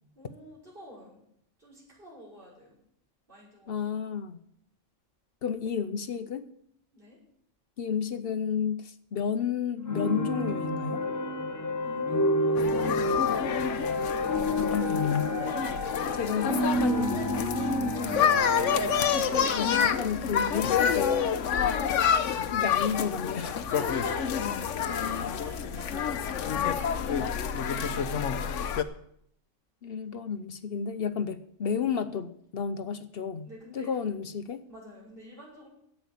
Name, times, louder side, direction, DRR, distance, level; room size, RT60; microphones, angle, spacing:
voice 1, 0.1-1.2 1.6-2.8 3.3-3.9 6.9-7.2 11.8-13.2 15.4-17.4 21.6-22.0 23.7-26.3 26.5-28.4 33.4-34.1 34.7-35.7, equal, 45° right, -5 dB, 6.0 m, -47 dB
voice 2, 3.7-4.4 5.4-6.5 7.8-11.0 14.6-15.4 16.2-17.1 19.5-21.3 22.5-23.7 24.9-25.3 29.8-34.7, left 7 dB, 55° left, 11 dB, 0.9 m, -32 dB
sound 1, 9.8-21.1, equal, 15° left, 1.2 m, -30 dB
sound 2, 12.6-28.8, left 8 dB, 75° left, 1.1 m, -28 dB
10.0 x 8.4 x 8.3 m, 0.70 s
omnidirectional pair, 1.3 m